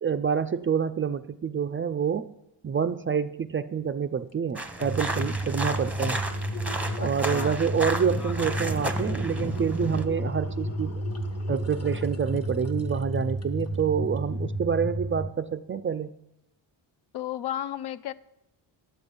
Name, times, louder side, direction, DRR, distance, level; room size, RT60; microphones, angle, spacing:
voice 1, 0.0-2.3 2.6-6.2 7.0-11.0 11.5-16.1, right 7 dB, 30° right, 11 dB, 0.3 m, -27 dB
sound 1, 4.3-4.4 4.7-13.8 14.2-14.3, left 5 dB, 30° left, 1.2 m, -44 dB
sound 2, 4.6-10.0, right 2 dB, 5° right, 0.8 m, -33 dB
sound 3, 4.8-15.2, right 1 dB, 80° left, 1.7 m, -32 dB
voice 2, 7.0-7.6 17.1-18.1, left 11 dB, 60° left, 15 dB, 0.5 m, -33 dB
9.8 x 7.8 x 5.3 m, 0.86 s
cardioid pair, 85°, 46 cm